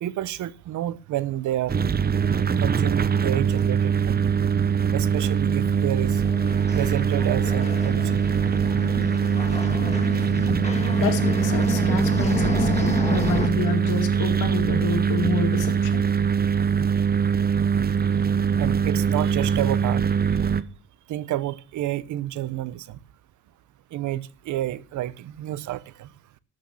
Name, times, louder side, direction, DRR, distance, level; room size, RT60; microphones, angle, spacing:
voice 1, 0.0-1.8 2.6-4.4 4.9-6.2 6.8-8.3 18.6-20.0 21.1-23.0 23.9-26.1, right 13 dB, 75° right, 0.9 m, -29 dB
sound 1, 1.7-20.6, right 7 dB, 30° right, 0.9 m, -22 dB
sound 2, 6.0-13.5, left 3 dB, 20° left, 2.2 m, -30 dB
voice 2, 11.0-16.0, left 5 dB, 90° left, 2.3 m, -28 dB
13.0 x 6.4 x 7.1 m
cardioid pair, 90°, 30 cm